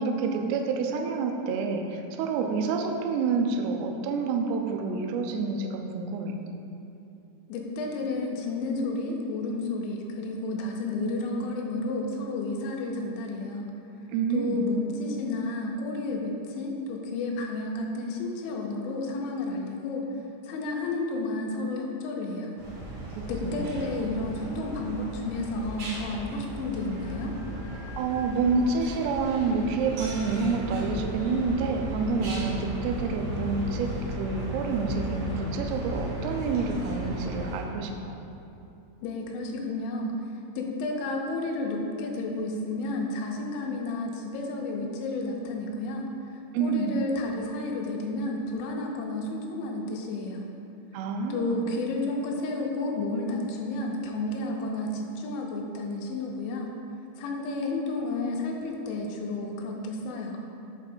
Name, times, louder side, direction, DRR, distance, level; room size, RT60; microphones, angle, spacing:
voice 1, 0.0-6.4 14.1-14.6 23.1-23.9 28.0-38.1 46.5-47.0 50.9-51.7, right 4 dB, 85° right, 3 dB, 2.3 m, -28 dB
voice 2, 7.5-13.7 14.3-20.1 20.4-22.6 23.3-27.4 39.0-40.1 40.6-50.5 51.3-56.7 57.2-60.4, left 2 dB, 85° left, 0 dB, 3.1 m, -31 dB
sound 1, 22.6-37.6, equal, 65° right, 1.6 m, -35 dB
8.3 x 3.2 x 5.4 m, 2.7 s
omnidirectional pair, 5.3 m